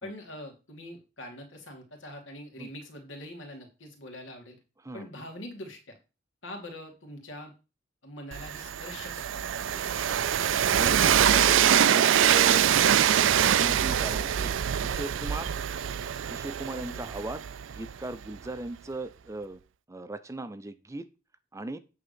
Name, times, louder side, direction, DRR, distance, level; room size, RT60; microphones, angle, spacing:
voice 1, 0.0-4.6 4.9-6.0 6.4-7.5 8.0-10.0 16.8-17.1, left 1 dB, 80° left, 3 dB, 2.5 m, -43 dB
Train, 8.3-18.2, right 9 dB, 75° right, 0.4 m, -24 dB
voice 2, 10.5-12.7 13.0-14.5 14.8-15.5 16.3-19.6 19.9-21.1 21.5-21.8, right 2 dB, 15° right, 12 dB, 0.5 m, -38 dB
8.7 x 3.7 x 6.8 m, 0.31 s
head